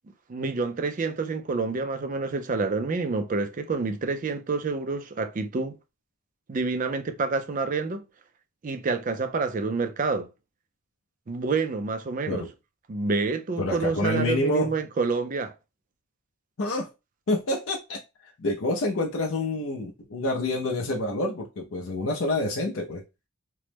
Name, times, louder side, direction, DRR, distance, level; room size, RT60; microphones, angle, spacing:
voice 1, 0.3-5.8 6.5-8.0 8.6-10.3 11.3-12.5 12.9-15.5, right 4 dB, 35° right, 0.4 m, -28 dB
voice 2, 13.6-14.8 16.6-16.9 17.3-23.0, left 1 dB, 60° left, 0.5 m, -28 dB
3.0 x 2.0 x 3.2 m
head